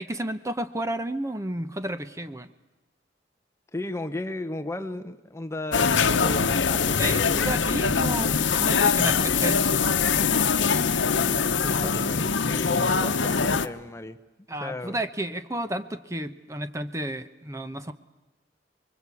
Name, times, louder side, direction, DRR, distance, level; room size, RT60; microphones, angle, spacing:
voice 1, 0.0-2.5 7.0-9.8 14.5-17.9, right 1 dB, 15° right, 10 dB, 0.9 m, -32 dB
voice 2, 3.7-7.7 11.0-14.2 14.6-15.0, left 1 dB, 15° left, 10 dB, 0.8 m, -35 dB
sound 1, 5.7-13.7, left 5 dB, 85° left, 0.9 m, -23 dB
sound 2, 5.9-13.0, equal, 45° right, 2.8 m, -46 dB
25.0 x 23.0 x 8.4 m, 1.1 s
head